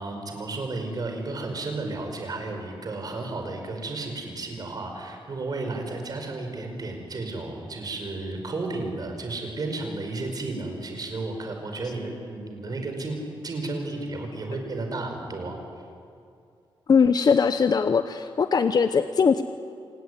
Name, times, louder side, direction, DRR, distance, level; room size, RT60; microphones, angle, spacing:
voice 1, 0.0-13.2 13.4-15.6, right 2 dB, 45° right, 4 dB, 5.1 m, -33 dB
voice 2, 16.9-19.4, left 6 dB, 45° left, 10 dB, 0.8 m, -20 dB
27.5 x 18.0 x 9.7 m, 2.4 s
wide cardioid pair, 140°, 9 cm